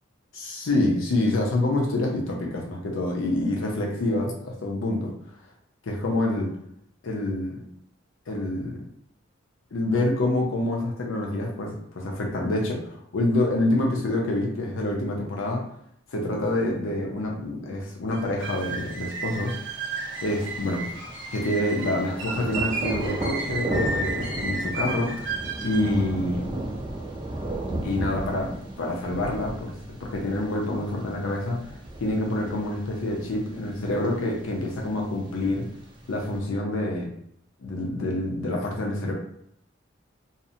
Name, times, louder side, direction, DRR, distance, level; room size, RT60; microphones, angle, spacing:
voice 1, 0.3-5.1 5.8-6.6 7.0-7.6 8.3-8.9 9.7-15.6 16.1-19.6 20.2-20.9 21.3-26.5 27.8-28.5 28.8-31.6 32.0-35.7 36.1-37.1 37.6-39.1, left 1 dB, 90° left, 0 dB, 0.5 m, -27 dB
sound 1, 18.1-26.0, right 3 dB, 80° right, 0.5 m, -33 dB
Thunder, 18.4-36.4, right 1 dB, 25° right, 0.3 m, -36 dB
2.6 x 2.0 x 2.6 m, 0.72 s
head